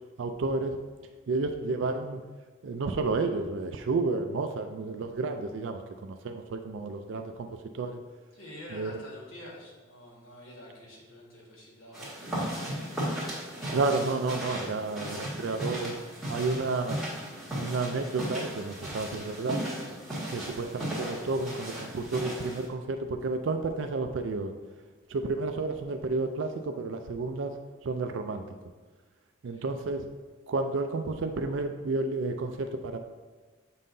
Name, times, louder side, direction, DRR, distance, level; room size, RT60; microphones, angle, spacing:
voice 1, 0.2-0.8 1.3-2.2 2.6-7.5 7.7-8.0 8.7-8.9 13.7-15.9 16.3-17.0 17.5-19.6 20.3-24.5 25.1-27.5 27.8-28.4 29.4-30.1 30.5-33.0, right 3 dB, 70° right, 6 dB, 0.4 m, -31 dB
voice 2, 8.3-13.2 29.5-29.7, left 1 dB, 85° left, -4 dB, 1.7 m, -48 dB
sound 1, 11.9-22.7, equal, ahead, 1.9 m, -36 dB
7.4 x 5.5 x 2.7 m, 1.3 s
head